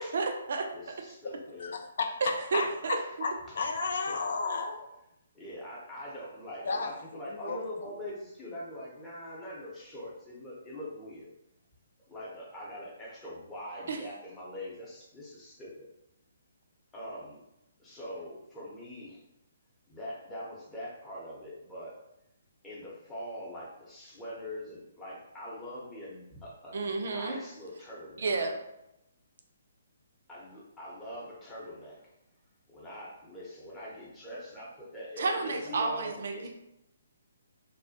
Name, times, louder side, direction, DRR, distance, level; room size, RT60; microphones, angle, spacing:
voice 1, 0.0-0.7 2.2-3.0 13.9-14.0 26.7-27.4 28.2-28.5 35.2-36.5, right 4 dB, 60° right, 3 dB, 0.4 m, -31 dB
voice 2, 0.7-1.7 2.5-3.1 3.5-3.6 3.9-4.3 5.3-11.3 12.1-15.9 16.9-17.4 17.8-19.2 19.9-22.0 22.6-28.3 30.3-32.0 32.7-36.5, left 1 dB, 10° left, -6 dB, 0.7 m, -43 dB
voice 3, 1.6-2.1 2.5-4.9 6.6-6.9 7.3-7.6, left 4 dB, 60° left, 3 dB, 0.3 m, -33 dB
2.3 x 2.1 x 2.7 m, 0.87 s
figure-of-eight pair, 135°, 0 cm